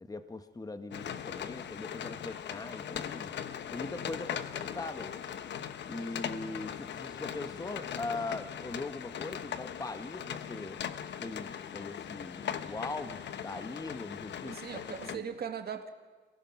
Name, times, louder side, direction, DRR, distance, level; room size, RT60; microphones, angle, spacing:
voice 1, 0.1-3.3 3.7-5.1 5.9-10.8 11.2-15.2, left 3 dB, 20° left, 9 dB, 1.3 m, -41 dB
sound 1, 0.9-15.2, left 9 dB, 65° left, 1.0 m, -40 dB
voice 2, 14.4-15.9, right 7 dB, 50° right, 6 dB, 2.0 m, -39 dB
27.0 x 17.0 x 6.0 m, 1.4 s
cardioid pair, 90°, 20 cm